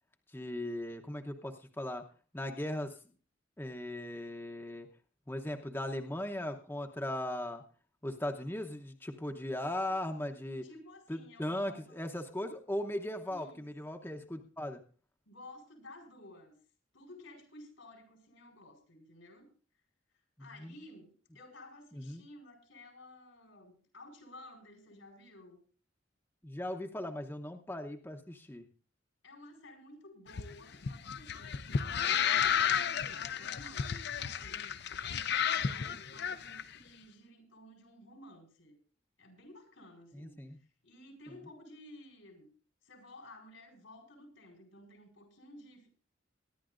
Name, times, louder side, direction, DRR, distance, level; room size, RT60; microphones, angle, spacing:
voice 1, 0.3-2.0 2.3-2.9 3.6-4.9 5.3-7.6 8.0-10.6 11.1-14.8 20.6-20.7 21.9-22.2 26.4-28.7 40.1-40.6 41.3-41.4, left 1 dB, 10° left, 4 dB, 0.8 m, -38 dB
voice 2, 10.5-12.0 13.3-13.7 15.2-16.6 16.9-19.5 20.4-25.6 29.2-34.6 35.1-38.8 39.2-42.5 42.8-45.9, left 1 dB, 90° left, 3 dB, 4.9 m, -54 dB
sound 1, 30.3-36.6, left 8 dB, 60° left, 0.7 m, -32 dB
23.0 x 11.0 x 2.5 m, 0.39 s
head